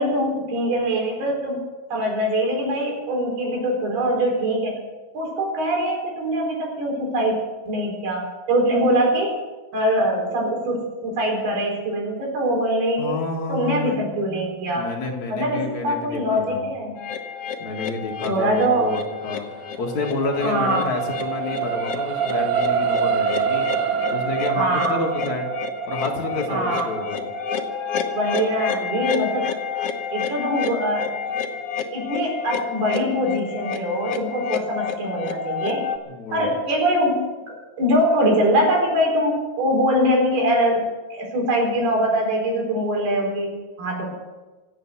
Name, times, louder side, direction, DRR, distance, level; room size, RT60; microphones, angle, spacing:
voice 1, 0.0-1.6 1.9-4.8 5.1-7.3 7.6-9.3 9.7-13.2 13.5-14.9 15.3-17.0 18.2-18.9 20.4-20.9 24.5-25.0 26.5-26.9 28.1-29.5 30.1-31.1 31.9-35.8 36.3-37.2 37.5-43.5 43.8-44.1, equal, 85° right, -1 dB, 6.5 m, -23 dB
voice 2, 13.0-14.0 14.7-16.7 17.6-23.7 24.1-25.5 25.9-27.2 36.1-36.5, left 3 dB, 55° left, 0 dB, 3.1 m, -29 dB
sound 1, 17.0-36.0, left 7 dB, 80° left, 1.3 m, -30 dB
sound 2, 19.4-31.9 32.4-32.6, right 7 dB, 70° right, 2.2 m, -27 dB
26.0 x 8.7 x 6.2 m, 1.2 s
omnidirectional pair, 4.4 m